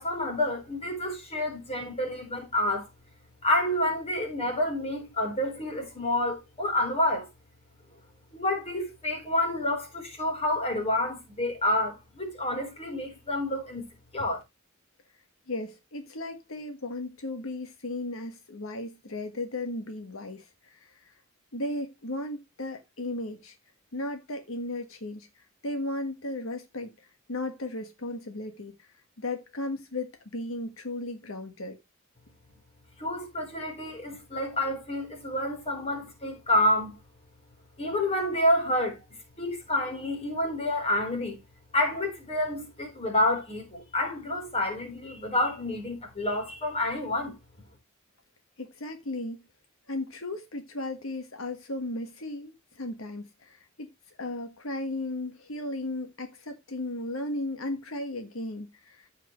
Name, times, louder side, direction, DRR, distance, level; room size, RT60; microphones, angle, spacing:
voice 1, 0.0-2.9 3.4-7.3 8.3-13.9 14.1-14.4 33.0-37.0 37.8-39.0 39.4-41.4 41.7-47.3, left 1 dB, 30° left, 4.0 m, -28 dB
voice 2, 15.5-21.1 21.5-23.6 23.9-25.3 25.6-26.9 27.3-28.9 29.2-31.8 48.6-49.4 49.9-53.9 54.2-59.1, left 2 dB, 75° left, 1.5 m, -35 dB
14.5 x 5.9 x 3.1 m
head